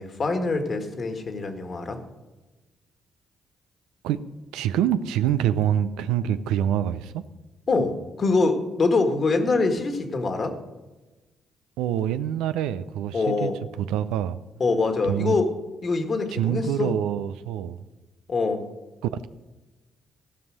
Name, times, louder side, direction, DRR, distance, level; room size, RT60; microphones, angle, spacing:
voice 1, 0.0-2.0 7.7-10.5 13.1-13.5 14.6-15.5 15.8-16.9 18.3-18.6, left 3 dB, 50° left, 5 dB, 1.8 m, -24 dB
voice 2, 4.5-7.2 11.8-13.5 13.8-14.4 15.0-15.4 16.3-17.8 19.0-19.3, right 10 dB, 90° right, 12 dB, 0.4 m, -25 dB
15.0 x 5.5 x 6.4 m, 1.2 s
supercardioid pair, 60°, 0 cm